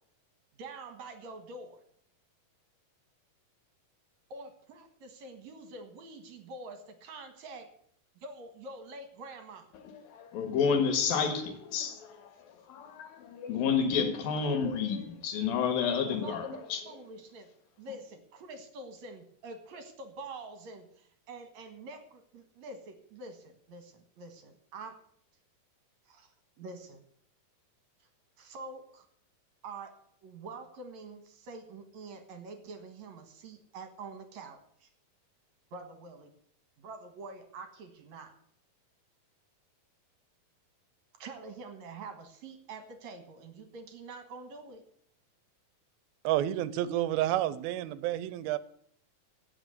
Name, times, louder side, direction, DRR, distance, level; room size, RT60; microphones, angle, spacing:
voice 1, 0.6-1.8 4.3-7.7 8.2-9.7 16.1-16.6 16.8-17.5 17.8-24.9 26.1-26.3 26.6-27.0 28.4-29.1 29.6-29.9 30.2-34.9 35.7-36.3 36.8-38.3 41.2-44.8, right 3 dB, 60° right, 2.6 m, -46 dB
voice 2, 9.7-16.8, left 6 dB, 75° left, 3.4 m, -30 dB
voice 3, 46.2-48.6, right 13 dB, 85° right, 2.6 m, -30 dB
16.5 x 6.1 x 8.2 m
omnidirectional pair, 4.2 m